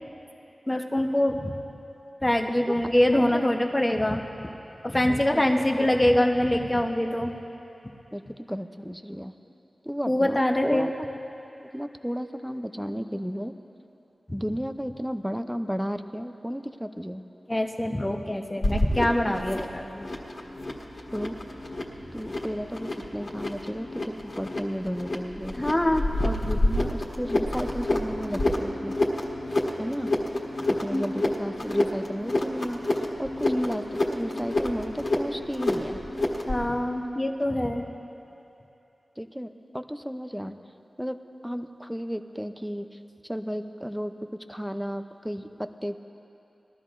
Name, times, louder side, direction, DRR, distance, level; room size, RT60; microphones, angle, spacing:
voice 1, 0.7-1.5 2.2-4.5 4.8-7.3 10.1-10.9 17.5-20.0 25.5-26.0 26.8-26.9 30.9-31.1 33.5-33.7 36.5-37.9, left 1 dB, 20° left, 3 dB, 0.9 m, -24 dB
voice 2, 3.1-3.8 5.1-5.4 5.8-6.0 8.1-9.3 9.8-10.9 11.6-13.5 14.3-17.2 21.1-21.4 22.1-25.5 26.2-28.9 29.8-30.1 30.8-32.8 33.2-36.0 39.2-40.6 41.0-41.2 41.4-45.9, equal, 5° right, 8 dB, 0.5 m, -33 dB
sound 1, 18.6-36.6, left 1 dB, 55° left, 1.6 m, -29 dB
20.0 x 13.0 x 2.5 m, 2.9 s
wide cardioid pair, 60°, 0 cm